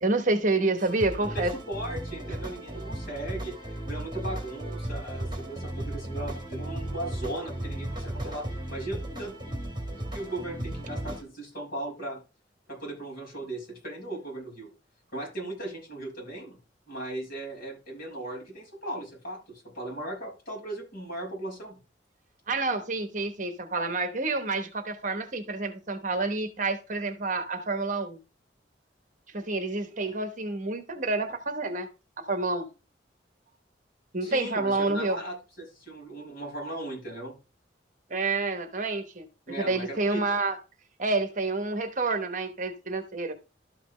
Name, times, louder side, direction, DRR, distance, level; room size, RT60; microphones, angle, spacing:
voice 1, 0.0-1.5 22.5-28.2 29.3-31.9 32.2-32.7 34.1-35.2 38.1-39.3 39.6-40.6 41.0-43.3, right 3 dB, 45° right, 1.1 m, -28 dB
sound 1, 0.8-11.2, right 1 dB, 25° right, 2.7 m, -35 dB
voice 2, 1.2-9.4 10.0-12.2 12.7-14.7 15.1-16.6 16.9-21.8 34.2-37.4 39.5-40.4, right 1 dB, 50° left, 5.7 m, -37 dB
12.5 x 5.9 x 3.2 m
head